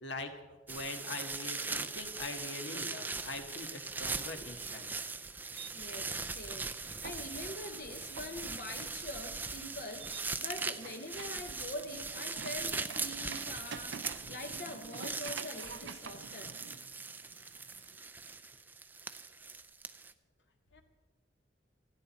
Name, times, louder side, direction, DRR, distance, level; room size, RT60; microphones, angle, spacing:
voice 1, 0.0-4.9 20.7-20.8, left 2 dB, 80° left, 5 dB, 1.8 m, -43 dB
sound 1, 0.7-20.1, right 4 dB, 10° right, 0.4 m, -40 dB
sound 2, 5.5-18.0, right 6 dB, 80° right, 0.6 m, -50 dB
voice 2, 5.7-16.5, left 1 dB, 50° left, 5 dB, 0.9 m, -44 dB
29.0 x 10.5 x 4.3 m, 1.3 s
head